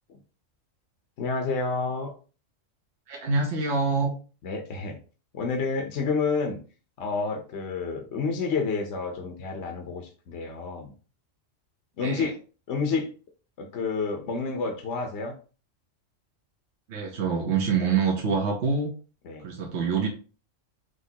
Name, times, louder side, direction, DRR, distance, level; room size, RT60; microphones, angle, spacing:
voice 1, 1.2-2.1 4.4-5.0 5.3-6.6 7.0-10.9 12.0-12.3 12.7-13.1 13.6-15.4 19.2-19.5, left 4 dB, 65° left, 3 dB, 1.0 m, -29 dB
voice 2, 3.1-4.1 12.0-12.3 16.9-18.9 19.4-20.1, right 5 dB, 60° right, 0 dB, 1.2 m, -26 dB
5.1 x 3.2 x 2.8 m, 0.36 s
omnidirectional pair, 1.3 m